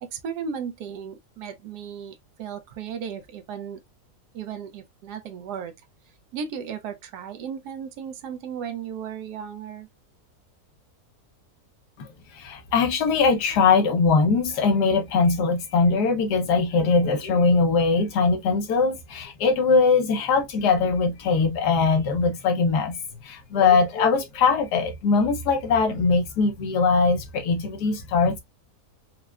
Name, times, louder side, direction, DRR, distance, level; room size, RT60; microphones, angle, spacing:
voice 1, 0.0-3.8 4.3-5.7 6.3-9.9, right 7 dB, 75° right, 1.1 m, -35 dB
voice 2, 12.3-28.4, left 4 dB, 80° left, 1.4 m, -21 dB
4.6 x 2.1 x 2.3 m
omnidirectional pair, 1.7 m